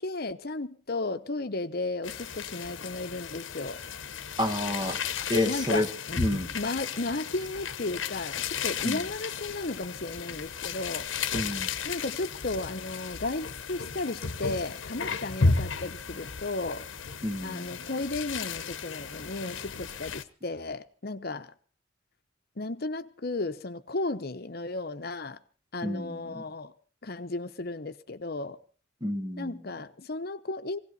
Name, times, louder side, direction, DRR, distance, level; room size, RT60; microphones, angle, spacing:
voice 1, 0.0-3.8 5.5-6.2 6.5-11.1 11.8-16.9 17.4-21.5 22.6-25.4 25.7-26.7 27.0-28.6 29.4-30.8, left 2 dB, 55° left, 1.0 m, -34 dB
sound 1, 2.0-20.2, left 5 dB, 80° left, 1.0 m, -34 dB
voice 2, 4.4-5.0 5.3-5.9 6.2-6.5 8.8-9.0 11.3-11.7 17.2-17.6 25.8-26.4 29.0-29.5, left 1 dB, 20° right, 2.1 m, -29 dB
20.5 x 17.0 x 4.1 m
head